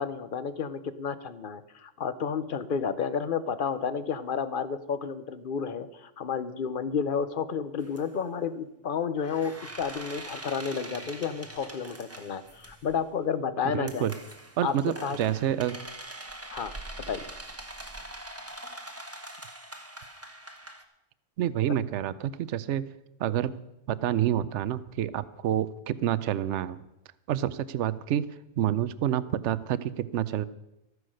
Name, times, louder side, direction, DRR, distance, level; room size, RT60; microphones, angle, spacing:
voice 1, 0.0-14.1 14.6-14.7 15.0-15.2 16.5-16.7 17.1-17.3, left 6 dB, 50° left, 13 dB, 0.8 m, -31 dB
sound 1, 7.8-8.0 9.2-13.0 13.9-20.8, right 1 dB, 10° right, 1.0 m, -43 dB
voice 2, 13.7-14.1 14.6-15.8 21.4-22.9 23.2-23.5 23.9-26.8 27.3-28.3 28.6-30.4, right 11 dB, 70° right, 16 dB, 0.9 m, -28 dB
13.5 x 9.6 x 6.4 m, 0.90 s
omnidirectional pair, 1.3 m